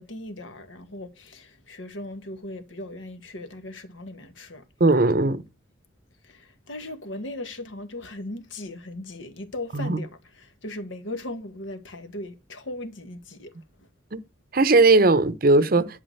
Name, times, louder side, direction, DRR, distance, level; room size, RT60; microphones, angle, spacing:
voice 1, 0.0-4.6 6.2-13.5, left 1 dB, 75° left, 1.7 m, -38 dB
voice 2, 4.8-5.4 9.7-10.0 14.1-14.2 14.5-16.0, right 2 dB, 45° right, 0.7 m, -18 dB
11.0 x 4.9 x 7.9 m
head